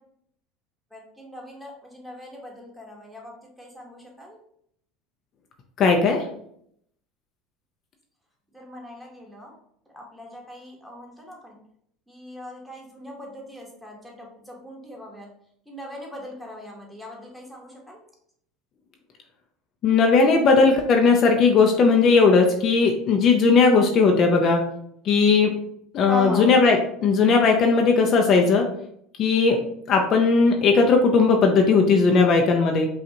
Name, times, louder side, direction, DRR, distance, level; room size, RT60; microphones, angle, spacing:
voice 1, 0.9-3.3 3.6-4.4 8.5-9.5 9.9-11.6 12.1-15.3 15.7-18.0 26.1-26.5, left 1 dB, 5° right, -2 dB, 1.3 m, -38 dB
voice 2, 5.8-6.2 19.8-24.6 25.0-25.5 25.9-28.6 29.2-29.6 29.9-32.9, left 4 dB, 50° left, 3 dB, 0.6 m, -18 dB
5.0 x 2.4 x 2.9 m, 0.70 s
supercardioid pair, 100°, 0 cm